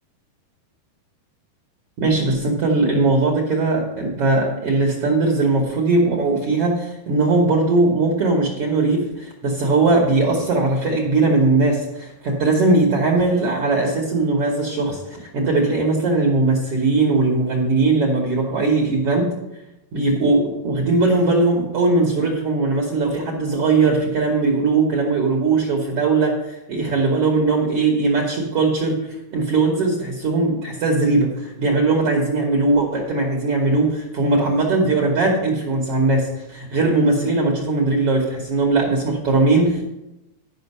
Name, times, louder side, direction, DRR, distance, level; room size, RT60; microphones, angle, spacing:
voice 1, 2.0-19.3 19.9-29.0 29.3-39.8, right 3 dB, 85° right, 0 dB, 1.3 m, -19 dB
11.5 x 5.4 x 5.4 m, 0.93 s
omnidirectional pair, 4.5 m